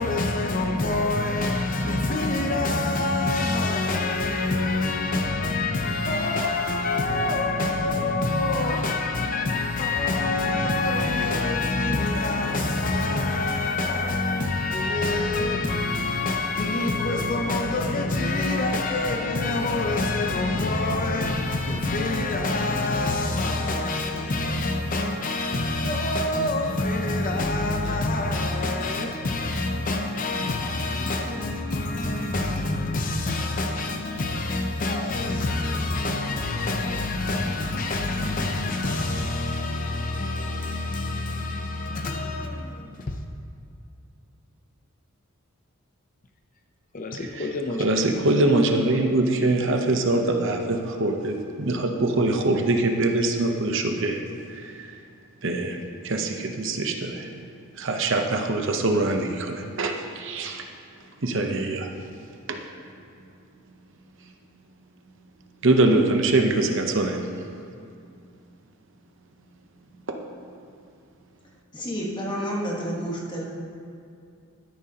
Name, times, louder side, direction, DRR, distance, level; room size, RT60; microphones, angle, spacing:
voice 1, 0.0-43.2 46.9-47.8, left 2 dB, 35° left, 0.6 m, -26 dB
voice 2, 47.1-47.5 47.8-54.2 54.6-54.9 55.4-55.8 56.0-57.3 57.8-60.6 61.2-61.9 62.5-62.6 65.6-67.2 70.1-70.2, right 2 dB, 55° right, 0.8 m, -23 dB
voice 3, 71.7-73.4, equal, 20° left, 1.3 m, -29 dB
12.5 x 10.5 x 2.9 m
head